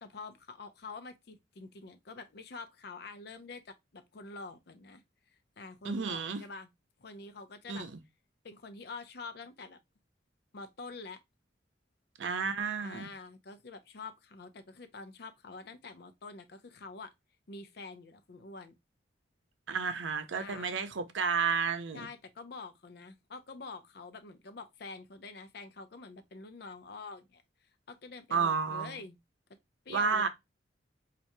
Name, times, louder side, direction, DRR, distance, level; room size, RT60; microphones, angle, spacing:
voice 1, 0.0-5.0 5.6-6.7 7.0-7.9 8.4-9.8 10.5-11.2 12.8-17.1 17.5-18.7 20.3-20.8 21.9-27.4 27.9-29.2 29.9-30.3, left 3 dB, 60° left, 0.5 m, -46 dB
voice 2, 5.8-6.4 7.7-8.0 12.2-13.1 19.7-22.1 28.3-29.0 29.9-30.3, right 5 dB, 90° right, 0.6 m, -31 dB
4.5 x 2.5 x 2.6 m
head